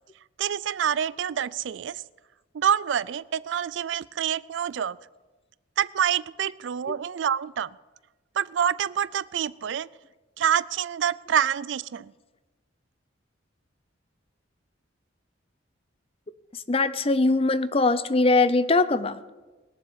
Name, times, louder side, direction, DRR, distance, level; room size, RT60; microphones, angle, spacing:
voice 1, 0.4-2.0 2.5-5.0 5.8-7.7 8.4-9.9 10.4-12.1, right 8 dB, 65° right, 20 dB, 0.4 m, -27 dB
voice 2, 16.7-19.2, left 3 dB, 30° left, 14 dB, 0.6 m, -21 dB
20.5 x 7.4 x 7.9 m, 1.2 s
head